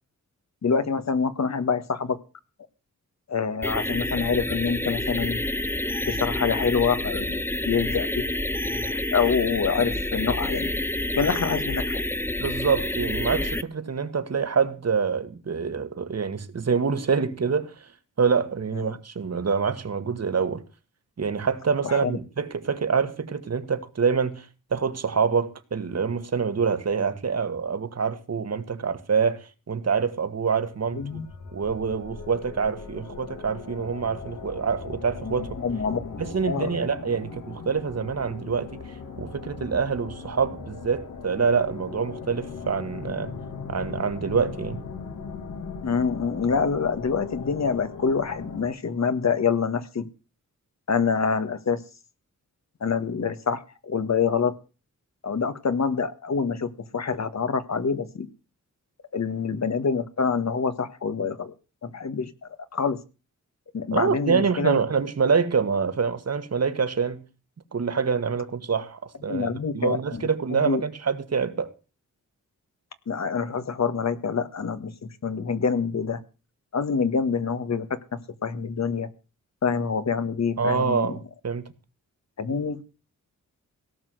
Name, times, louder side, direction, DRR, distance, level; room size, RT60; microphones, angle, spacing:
voice 1, 0.6-2.2 3.3-5.4 6.1-8.2 8.8-10.7 11.1-12.0 21.8-22.2 30.9-31.3 35.2-36.8 45.8-50.1 50.9-51.8 52.8-54.5 55.2-58.3 59.1-61.5 61.8-62.3 62.7-63.0 63.7-64.8 69.3-70.2 70.5-70.8 73.1-76.2 76.7-79.1 79.6-81.1 82.4-82.8, left 5 dB, 60° left, 1.7 m, -26 dB
sound 1, 3.6-13.6, left 1 dB, 5° left, 0.8 m, -28 dB
voice 2, 12.4-17.9 18.2-20.6 21.2-31.2 31.5-35.5 36.2-38.8 39.2-43.3 43.7-44.8 63.9-67.2 67.7-69.5 69.7-71.7 80.6-81.6, right 5 dB, 55° right, 2.0 m, -26 dB
sound 2, 30.7-48.7, left 5 dB, 75° left, 2.9 m, -39 dB
17.5 x 6.1 x 7.9 m
cardioid pair, 80°, 31 cm